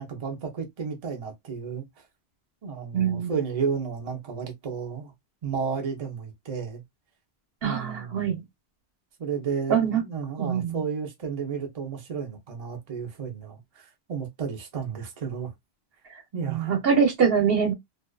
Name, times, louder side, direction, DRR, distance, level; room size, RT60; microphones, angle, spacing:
voice 1, 0.0-1.8 2.6-5.1 5.4-6.8 7.6-8.3 9.2-15.5 16.3-16.7, right 6 dB, 40° right, 0.7 m, -32 dB
voice 2, 2.9-3.3 7.6-8.4 9.7-10.0 10.4-10.8 16.5-17.7, right 7 dB, 70° right, 1.0 m, -23 dB
2.5 x 2.3 x 2.2 m
omnidirectional pair, 1.1 m